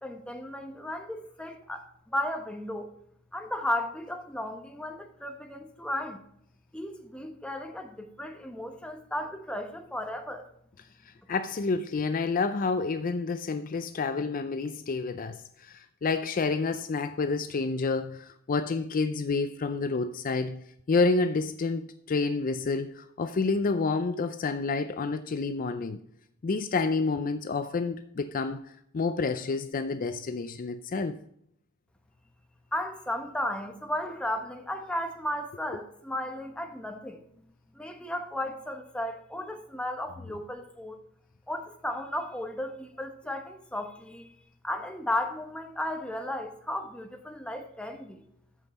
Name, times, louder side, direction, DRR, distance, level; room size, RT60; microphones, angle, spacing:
voice 1, 0.0-2.9 3.3-6.2 6.7-10.5 32.7-37.2 37.7-41.0 41.5-44.3 44.6-48.2, left 1 dB, 5° left, 1.0 m, -34 dB
voice 2, 11.0-26.0 26.4-28.6 28.9-31.2, left 4 dB, 40° left, 0.4 m, -29 dB
13.5 x 5.4 x 4.2 m
head